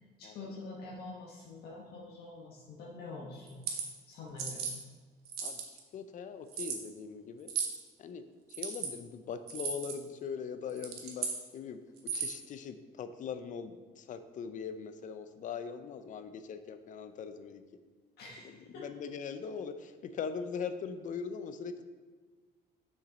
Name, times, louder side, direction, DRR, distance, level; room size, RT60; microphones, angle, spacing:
voice 1, 0.2-3.6 4.1-4.7 18.2-18.5 18.7-18.9, left 3 dB, 70° left, -3 dB, 1.1 m, -45 dB
sound 1, 3.5-3.9 4.4-4.7 5.3-5.8 6.5-6.8 7.5-7.8 8.5-8.9 9.5-10.0 10.7-11.4 12.0-12.4, right 6 dB, 70° right, 1.2 m, -36 dB
voice 2, 5.9-7.5 8.0-8.2 8.6-11.3 11.5-11.8 12.2-17.6 18.8-21.9, left 6 dB, 50° left, 10 dB, 0.5 m, -41 dB
6.6 x 6.0 x 4.0 m, 1.4 s
cardioid pair, 110°, 17 cm